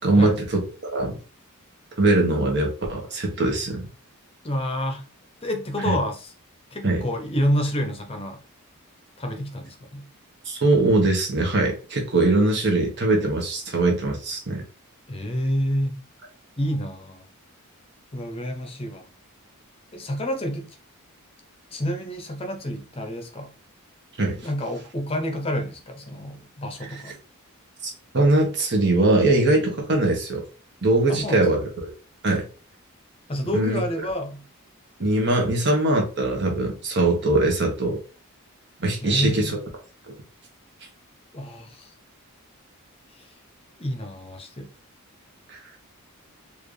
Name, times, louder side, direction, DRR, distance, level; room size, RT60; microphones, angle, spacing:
voice 1, 0.0-0.6 0.9-1.1 2.0-3.9 5.8-6.0 6.8-7.0 10.4-14.6 24.2-24.4 26.8-26.9 27.8-30.4 30.8-31.9 32.2-32.5 33.5-33.8 35.0-38.0 38.8-39.5 45.5-45.6, right 2 dB, 50° right, 1.3 m, -21 dB
voice 2, 4.4-5.0 5.4-6.3 6.7-8.4 9.2-10.1 15.1-16.0 16.6-17.2 18.1-19.1 19.9-20.7 21.7-23.5 24.4-27.2 31.1-31.7 33.3-34.4 39.0-39.6 41.3-41.9 43.2-43.3 43.8-44.7, equal, 25° left, 0.8 m, -28 dB
4.4 x 2.6 x 3.2 m
head